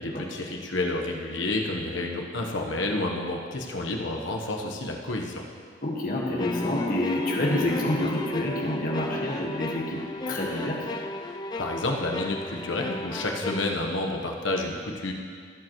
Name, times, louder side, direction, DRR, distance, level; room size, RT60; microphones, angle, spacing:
voice 1, 0.0-5.4 11.3-15.1, left 2 dB, 85° left, 1 dB, 1.1 m, -30 dB
voice 2, 5.8-10.0 10.3-10.8, left 1 dB, 45° left, -3 dB, 1.6 m, -28 dB
sound 1, 6.4-13.6, left 2 dB, 20° left, 0.3 m, -33 dB
16.0 x 7.8 x 3.1 m, 2.1 s
head